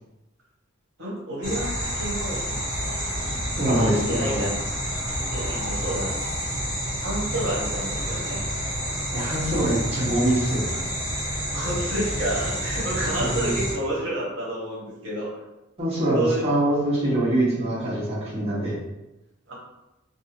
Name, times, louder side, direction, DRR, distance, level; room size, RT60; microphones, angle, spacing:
voice 1, 1.0-2.6 3.7-4.5 5.2-6.1 7.0-8.5 11.5-15.3 16.1-16.5 19.5-19.6, right 1 dB, 60° right, -5 dB, 0.9 m, -30 dB
sound 1, 1.4-13.7, equal, 35° left, 1.2 m, -29 dB
voice 2, 3.6-4.5 9.1-10.8 13.2-13.5 15.8-18.7, right 1 dB, 30° right, -9 dB, 0.8 m, -24 dB
2.6 x 2.3 x 2.8 m, 0.96 s
head